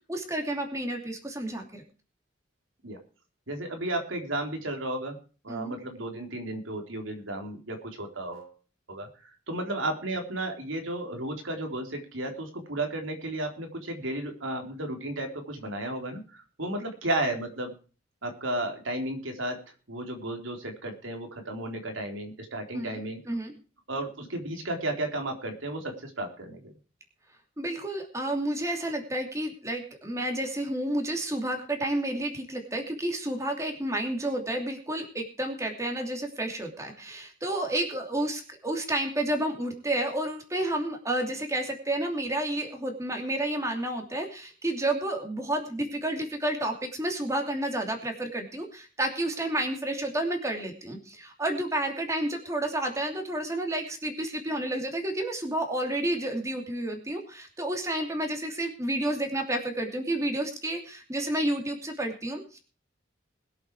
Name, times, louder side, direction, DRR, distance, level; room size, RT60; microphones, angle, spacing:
voice 1, 0.1-1.8 5.5-5.7 22.7-23.5 27.6-62.6, right 1 dB, 15° right, 3 dB, 2.8 m, -30 dB
voice 2, 3.5-5.2 5.4-8.5 8.9-9.1 9.5-17.7 18.2-19.6 19.9-23.2 23.9-26.7, right 1 dB, 90° right, 3 dB, 3.9 m, -33 dB
21.0 x 8.3 x 4.8 m, 0.37 s
head